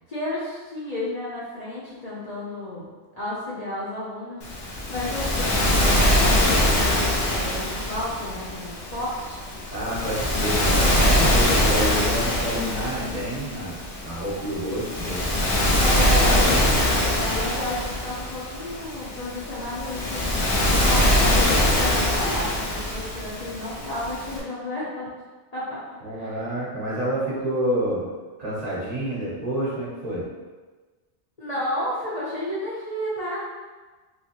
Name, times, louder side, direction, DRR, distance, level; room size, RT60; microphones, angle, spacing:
voice 1, 0.1-2.9 3.1-9.4 15.8-20.4 20.7-25.1 25.5-25.8 26.1-26.4 31.4-33.5, left 1 dB, 40° left, -8 dB, 0.7 m, -32 dB
Waves surf, 4.4-24.4, left 1 dB, 85° left, 1.0 m, -23 dB
voice 2, 9.7-15.3 16.2-17.1 26.0-28.0 28.4-30.3, right 1 dB, 40° right, -8 dB, 1.0 m, -28 dB
3.1 x 3.0 x 2.9 m, 1.3 s
omnidirectional pair, 1.2 m